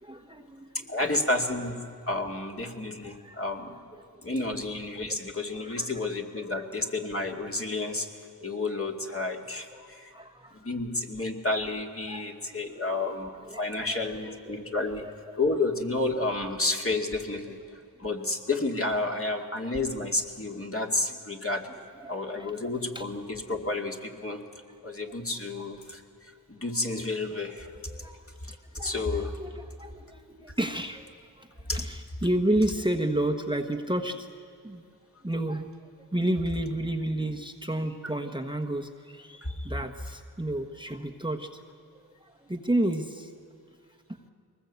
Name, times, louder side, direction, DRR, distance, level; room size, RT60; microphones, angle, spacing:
voice 1, 0.0-1.2 2.6-3.4 5.0-5.1 5.6-6.1 6.4-6.9 9.7-10.7 12.1-12.2 12.7-13.0 13.3-15.4 19.1-19.5 22.0-22.6 22.9-23.0 26.7-26.8 27.7-28.2 28.5-31.0 31.4-31.5 31.7-34.3 34.6-34.8 35.2-35.7 36.0-41.5 41.9-43.3, right 1 dB, 10° right, 5 dB, 1.3 m, -32 dB
voice 2, 0.9-1.8 2.1-3.8 4.2-8.1 8.4-10.1 10.5-15.0 15.4-17.6 18.0-21.7 22.1-27.8 28.4-29.3 31.7-31.8 39.4-39.5, left 2 dB, 35° left, 2 dB, 2.4 m, -31 dB
22.5 x 20.0 x 8.3 m, 2.4 s
cardioid pair, 40°, 39 cm